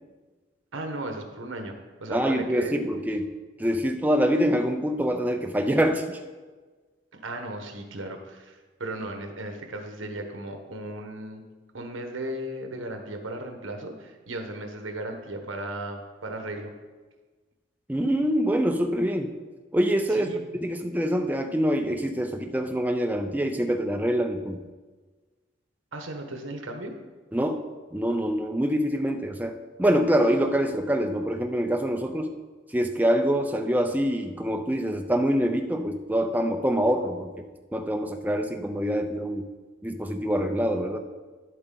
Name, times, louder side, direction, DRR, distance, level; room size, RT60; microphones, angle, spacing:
voice 1, 0.7-2.8 7.1-11.4 11.7-16.7 20.2-20.4 25.9-27.0, right 1 dB, 90° right, 5 dB, 1.2 m, -36 dB
voice 2, 2.1-3.3 3.6-6.2 17.9-19.4 19.7-24.6 27.3-32.4 32.7-39.5 39.8-41.0, equal, 10° right, 5 dB, 0.4 m, -25 dB
11.0 x 7.9 x 3.9 m, 1.4 s
head